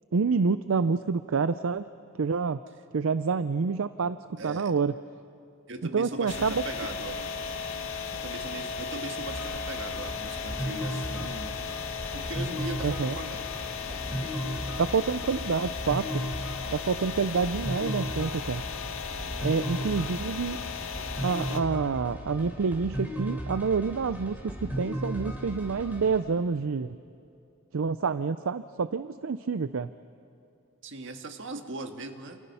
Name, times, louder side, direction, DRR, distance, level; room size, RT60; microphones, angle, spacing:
voice 1, 0.1-1.8 2.2-2.6 2.9-4.9 5.9-6.6 12.8-13.2 14.8-16.2 16.7-18.6 19.4-20.6 21.2-27.0 27.7-29.9, right 5 dB, 75° right, 13 dB, 0.5 m, -28 dB
voice 2, 4.4-4.7 5.7-7.3 8.2-11.6 12.1-13.4 30.8-32.4, right 2 dB, 60° right, 5 dB, 1.7 m, -39 dB
sound 1, 6.3-21.6, left 6 dB, 70° left, 1.6 m, -36 dB
sound 2, 9.3-26.2, equal, 10° right, 3.9 m, -36 dB
28.5 x 28.0 x 5.6 m, 2.6 s
head